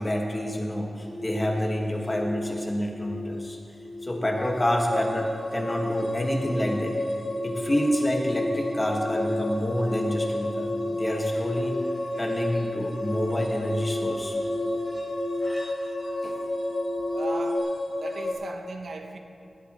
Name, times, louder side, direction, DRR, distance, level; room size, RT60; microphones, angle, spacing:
voice 1, 0.0-3.6 4.0-6.9 7.4-11.8 12.2-14.4 16.2-16.3, equal, 25° left, 0 dB, 1.8 m, -28 dB
sound 1, 1.0-17.6, left 2 dB, ahead, 3.5 m, -35 dB
sound 2, 4.3-18.3, left 1 dB, 65° left, 2.9 m, -32 dB
voice 2, 17.1-19.2, right 3 dB, 80° right, 4 dB, 1.0 m, -38 dB
18.5 x 12.0 x 3.2 m, 2.8 s
wide cardioid pair, 95°, 0 cm